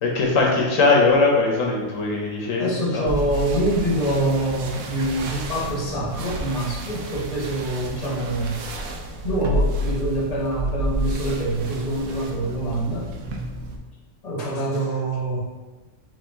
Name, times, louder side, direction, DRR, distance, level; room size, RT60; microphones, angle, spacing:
voice 1, 0.0-3.0, left 3 dB, 75° left, -2 dB, 1.1 m, -20 dB
voice 2, 2.6-8.7 9.2-13.1 14.2-15.4, right 1 dB, 30° left, -4 dB, 1.0 m, -25 dB
sound 1, 3.1-13.8, equal, 75° right, 0.9 m, -30 dB
4.7 x 2.8 x 3.5 m, 1.2 s
omnidirectional pair, 1.4 m